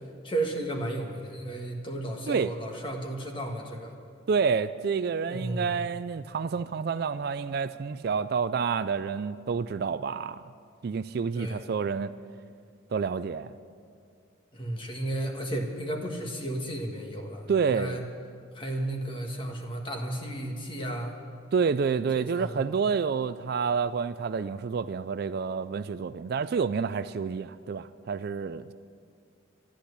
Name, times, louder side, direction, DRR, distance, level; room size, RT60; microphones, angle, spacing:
voice 1, 0.2-3.9 5.2-5.8 11.3-11.7 14.5-18.0 18.5-21.1 22.2-22.6, right 1 dB, 25° left, 2 dB, 1.5 m, -33 dB
voice 2, 4.3-10.4 10.8-12.1 12.9-13.5 17.5-18.0 21.5-28.7, right 5 dB, 50° right, 13 dB, 0.3 m, -28 dB
13.0 x 11.5 x 8.2 m, 2.3 s
head